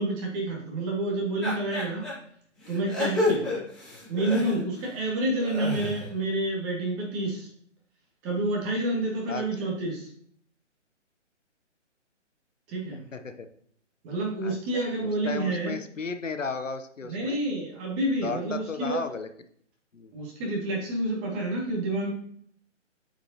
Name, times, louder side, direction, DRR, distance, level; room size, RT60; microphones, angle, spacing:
voice 1, 0.0-2.1 2.7-3.5 4.1-7.5 8.2-10.1 12.7-13.0 14.0-15.8 17.0-19.0 20.1-22.1, right 2 dB, 20° right, -2 dB, 2.1 m, -29 dB
sound 1, 1.4-2.1 2.6-4.9 5.3-6.1, left 2 dB, ahead, 2.1 m, -29 dB
voice 2, 3.3-3.6 9.3-9.7 13.1-13.5 14.4-17.4 18.2-19.3 19.9-20.1, left 4 dB, 90° left, 9 dB, 0.9 m, -35 dB
8.5 x 5.2 x 2.9 m, 0.63 s
figure-of-eight pair, 140°, 37 cm